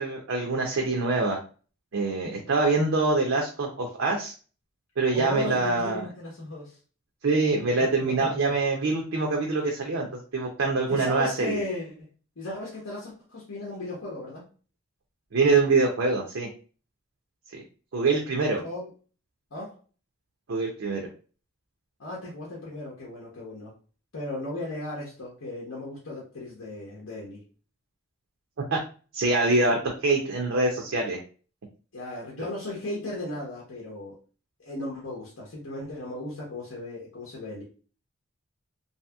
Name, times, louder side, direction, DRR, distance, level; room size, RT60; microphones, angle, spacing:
voice 1, 0.0-1.4 1.9-4.3 5.0-6.1 7.2-10.1 10.3-11.6 15.3-16.5 17.5-17.6 17.9-18.6 20.5-21.0 28.7-28.8 29.1-31.2, right 3 dB, 70° right, 1 dB, 0.5 m, -24 dB
voice 2, 5.1-6.8 8.1-8.6 10.9-12.1 12.4-14.5 18.6-18.9 19.5-19.7 22.0-23.7 24.1-27.4 31.9-34.2 34.6-37.6, left 2 dB, 70° left, -4 dB, 0.8 m, -36 dB
2.8 x 2.7 x 2.2 m, 0.38 s
head